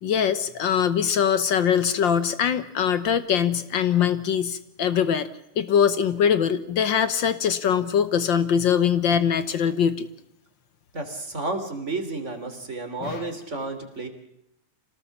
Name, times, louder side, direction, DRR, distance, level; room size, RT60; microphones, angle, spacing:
voice 1, 0.0-5.3 5.6-10.1 13.0-13.2, left 8 dB, 65° left, 13 dB, 1.1 m, -22 dB
voice 2, 10.9-14.1, right 2 dB, 25° right, 5 dB, 3.1 m, -31 dB
26.0 x 18.5 x 7.1 m, 0.80 s
omnidirectional pair, 3.4 m